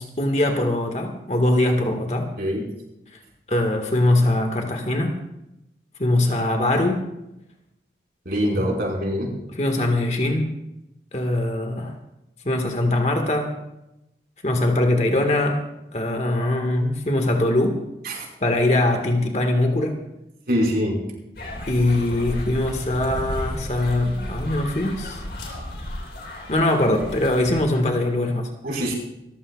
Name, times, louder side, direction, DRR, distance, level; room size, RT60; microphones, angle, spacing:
voice 1, 0.0-2.3 3.5-5.2 6.0-7.1 8.5-8.7 9.5-10.5 11.1-11.9 12.5-13.5 14.4-15.6 15.9-17.8 18.4-20.0 21.7-25.2 26.5-28.5, left 1 dB, 40° left, 4 dB, 1.8 m, -22 dB
voice 2, 8.3-9.3 18.0-18.3 20.5-21.0 28.6-28.9, equal, 60° right, -2 dB, 5.2 m, -23 dB
sound 1, 21.3-27.6, left 1 dB, 65° left, 3.9 m, -33 dB
27.0 x 14.5 x 2.4 m, 0.89 s
head